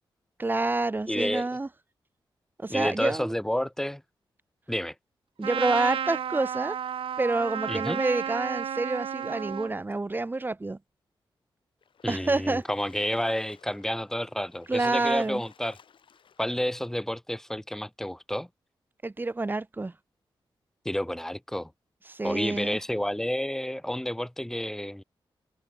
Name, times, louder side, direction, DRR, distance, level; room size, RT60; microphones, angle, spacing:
voice 1, 0.4-1.7 2.6-3.3 5.4-6.8 7.2-10.8 12.1-12.6 14.7-15.4 19.0-19.9 22.1-22.8, right 2 dB, 20° right, 2.2 m, -28 dB
voice 2, 1.1-1.5 2.7-4.0 4.7-4.9 7.7-8.0 12.0-15.8 16.4-18.5 20.9-21.7 22.2-25.0, left 1 dB, 5° left, 2.1 m, -30 dB
Trumpet, 5.4-9.7, right 8 dB, 90° right, 2.1 m, -32 dB
Splash splatter, 11.8-16.7, left 7 dB, 70° left, 5.6 m, -58 dB
wide cardioid pair, 110°, 9 cm